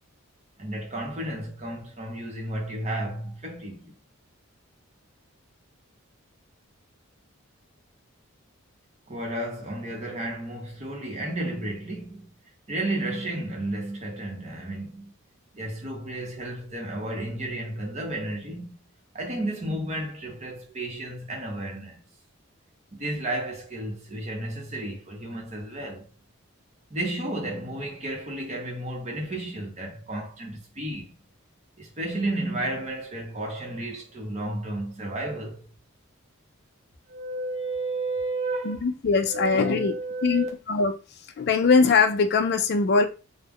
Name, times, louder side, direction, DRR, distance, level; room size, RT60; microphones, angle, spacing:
voice 1, 0.6-3.9 9.1-12.3 12.7-15.1 15.5-18.7 19.1-22.0 22.9-26.1 26.9-31.1 31.8-35.6 37.1-38.8 39.3-40.5, right 1 dB, 30° right, 0.8 m, -32 dB
voice 2, 38.6-40.0 40.2-40.9 41.4-43.1, left 4 dB, 50° left, 0.3 m, -21 dB
2.3 x 2.1 x 3.4 m
head